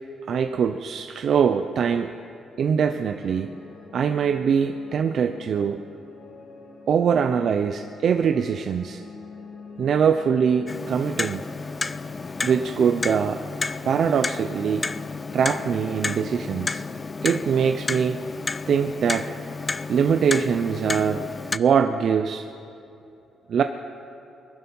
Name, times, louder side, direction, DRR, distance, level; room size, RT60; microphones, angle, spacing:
voice 1, 0.3-2.1 2.6-3.5 3.9-5.8 6.9-9.0 9.8-11.4 12.4-13.4 13.9-14.9 15.3-16.8 17.2-18.2 18.7-19.3 19.9-21.3 21.5-22.4 23.5-23.6, right 7 dB, 55° right, 8 dB, 0.5 m, -23 dB
sound 1, 2.8-17.7, left 4 dB, 60° left, 2.9 m, -45 dB
Clock, 10.7-21.6, left 4 dB, 25° left, 0.3 m, -31 dB
21.5 x 11.5 x 5.5 m, 2.9 s
cardioid pair, 110°, 0 cm